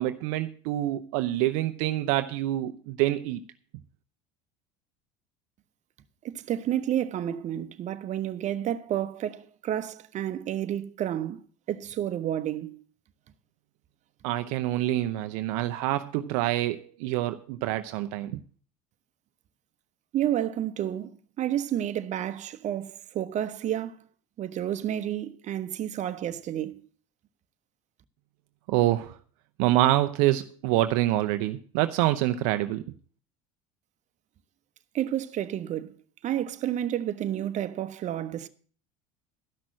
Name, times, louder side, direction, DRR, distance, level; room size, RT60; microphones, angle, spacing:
voice 1, 0.0-3.4 14.2-18.4 28.7-29.2 29.6-32.8, right 15 dB, 70° right, 0.6 m, -26 dB
voice 2, 6.2-12.8 20.1-24.0 24.4-26.8 34.9-36.0 36.2-38.5, right 11 dB, 45° right, 1.0 m, -30 dB
13.0 x 6.1 x 7.5 m
hypercardioid pair, 90°, 17 cm